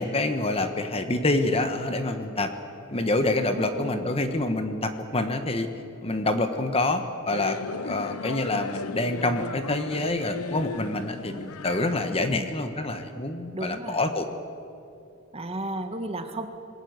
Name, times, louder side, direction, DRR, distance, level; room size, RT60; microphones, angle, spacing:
voice 1, 0.0-2.5 2.9-5.7 6.0-7.6 7.8-14.3, left 2 dB, 25° left, 7 dB, 1.4 m, -27 dB
voice 2, 3.5-4.2 12.2-12.5 13.5-14.0 15.3-16.5, right 1 dB, 30° right, 6 dB, 1.8 m, -34 dB
sound 1, 7.3-12.3, left 4 dB, 80° left, 0.8 m, -36 dB
27.0 x 21.0 x 8.1 m, 2.6 s
head